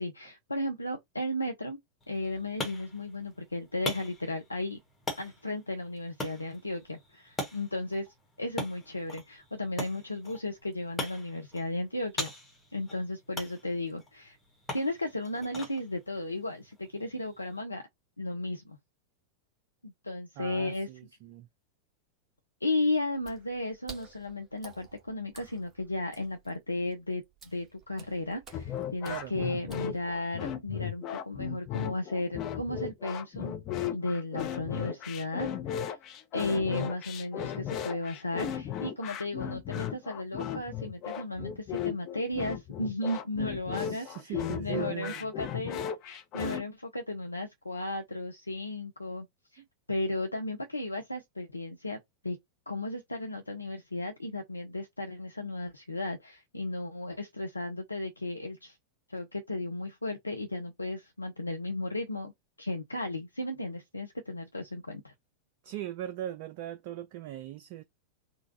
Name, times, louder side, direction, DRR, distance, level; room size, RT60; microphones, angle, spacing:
voice 1, 0.0-1.8 2.1-4.8 5.2-8.1 8.4-12.3 12.7-14.4 14.7-17.8 18.2-18.8 19.8-20.9 22.6-27.2 27.5-33.6 33.9-36.0 36.3-49.3 49.5-49.6 49.9-52.0 52.2-52.4 52.7-58.8 59.1-62.3 62.6-65.1, left 2 dB, 80° left, 0.5 m, -34 dB
sound 1, 2.0-17.6, left 1 dB, 15° left, 1.3 m, -42 dB
voice 2, 20.4-21.5 29.0-29.7 43.8-45.3 49.6-49.7 65.6-67.8, right 12 dB, 45° right, 0.3 m, -40 dB
Water / Splash splatter, 23.1-30.4, right 4 dB, 20° right, 1.7 m, -53 dB
sound 2, 28.5-46.6, left 9 dB, 35° left, 0.6 m, -36 dB
3.8 x 2.2 x 2.6 m
figure-of-eight pair, 90°, 0 cm